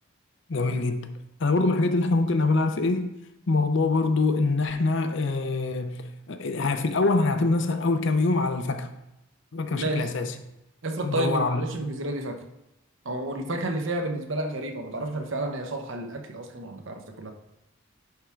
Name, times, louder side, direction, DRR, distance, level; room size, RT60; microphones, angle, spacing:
voice 1, 0.5-3.1 3.5-9.0 9.5-10.3 11.0-11.7, left 3 dB, 55° left, 0.6 m, -24 dB
voice 2, 9.7-10.1 10.8-12.4 13.0-17.3, right 2 dB, 60° right, 0.9 m, -31 dB
10.5 x 3.6 x 4.6 m
head